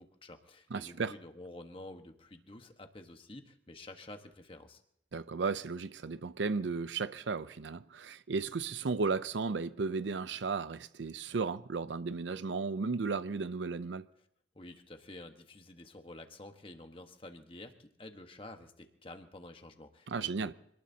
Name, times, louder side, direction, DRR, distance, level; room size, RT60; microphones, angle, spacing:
voice 1, 0.0-4.8 14.5-20.5, left 2 dB, 30° left, 1.3 m, -50 dB
voice 2, 0.7-1.1 5.1-14.0 20.1-20.5, right 4 dB, 80° right, 0.5 m, -34 dB
26.0 x 19.0 x 2.8 m
head